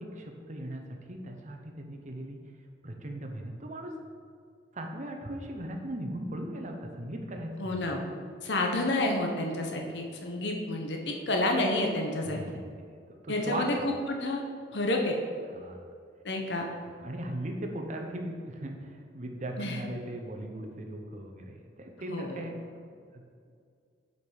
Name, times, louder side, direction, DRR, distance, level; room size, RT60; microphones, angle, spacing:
voice 1, 0.0-2.4 2.8-3.9 4.7-7.8 12.2-12.8 13.2-13.7 15.5-15.8 16.9-22.6 23.1-23.2, right 1 dB, 40° right, 3 dB, 0.8 m, -38 dB
voice 2, 7.6-8.0 8.4-12.4 13.3-13.9 14.2-14.4 14.7-15.2 16.2-16.7 19.6-19.8 22.1-22.4, left 2 dB, 65° left, 2 dB, 1.0 m, -29 dB
6.8 x 5.2 x 4.9 m, 2.2 s
head